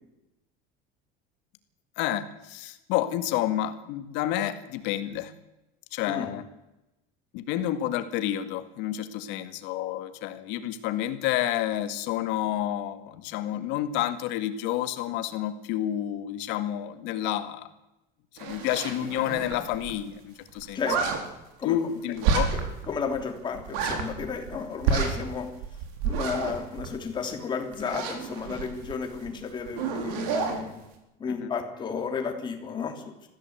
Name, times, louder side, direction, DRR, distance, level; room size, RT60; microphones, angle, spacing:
voice 1, 2.0-5.3 5.9-6.4 7.3-17.7 18.4-20.8 21.6-22.5 31.3-31.5, left 12 dB, 65° left, 10 dB, 1.9 m, -29 dB
sound 1, 18.4-19.9 20.2-20.3 20.5-21.2 22.2-22.9 23.1-23.2 23.5-24.6 24.8-27.3 27.7-29.3 29.6-30.6, right 6 dB, 85° right, 4.3 m, -29 dB
voice 2, 22.9-25.5 26.0-30.8 31.2-33.1, left 5 dB, 20° left, 4 dB, 3.1 m, -32 dB
21.0 x 15.0 x 8.1 m, 0.94 s
cardioid pair, 170°, 20 cm